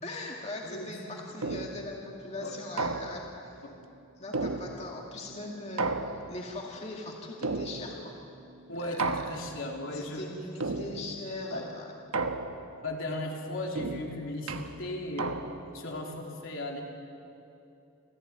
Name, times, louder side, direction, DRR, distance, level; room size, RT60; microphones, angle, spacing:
voice 1, 0.0-3.7 4.2-8.2 8.9-9.1 9.9-11.9, left 2 dB, 30° left, -1 dB, 2.3 m, -40 dB
sound 1, 1.4-2.0 2.8-3.4 4.3-5.1 5.8-6.6 7.4-8.1 9.0-9.7 10.6-11.3 12.1-12.9 13.8-15.8, right 3 dB, 85° right, 1.3 m, -34 dB
voice 2, 8.7-10.3 10.6-10.8 11.5-11.6 12.8-15.4 15.7-16.8, left 1 dB, 65° left, 0 dB, 3.5 m, -36 dB
29.0 x 15.5 x 9.6 m, 2.8 s
head